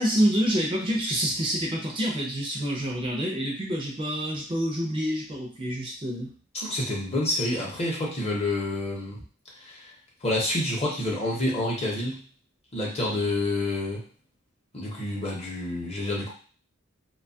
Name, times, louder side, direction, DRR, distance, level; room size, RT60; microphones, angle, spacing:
voice 1, 0.0-6.3, equal, 25° right, -2 dB, 0.5 m, -27 dB
voice 2, 6.5-9.2 9.6-9.9 10.2-12.2 12.7-14.0 14.7-16.3, left 1 dB, 30° left, -3 dB, 0.8 m, -28 dB
2.6 x 2.3 x 2.6 m, 0.41 s
head